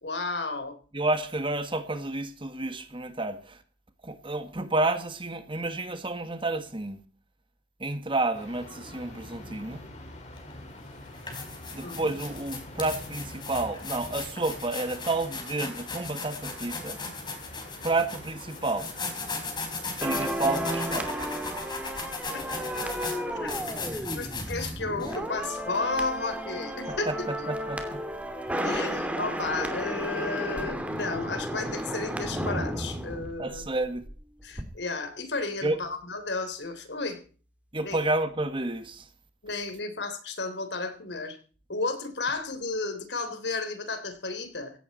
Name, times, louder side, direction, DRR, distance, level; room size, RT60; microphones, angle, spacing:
voice 1, 0.0-0.8 11.8-12.0 22.3-23.5 23.9-27.1 28.6-33.6 34.4-37.2 37.8-38.0 39.4-41.4 41.7-44.7, left 3 dB, 75° left, 3.6 m, -33 dB
voice 2, 0.9-3.6 4.0-7.0 7.8-9.8 11.7-17.0 17.8-18.9 20.0-21.1 26.9-28.0 28.5-28.6 33.4-34.1 35.6-35.8 37.7-39.1, right 2 dB, 30° right, 1.7 m, -30 dB
sound 1, 8.3-21.1, left 1 dB, 40° left, 4.9 m, -45 dB
sound 2, 10.4-10.5 11.0-25.2, left 4 dB, 25° left, 4.8 m, -37 dB
sound 3, 20.0-34.2 34.4-34.6, equal, 10° right, 2.7 m, -33 dB
17.0 x 15.5 x 4.3 m
head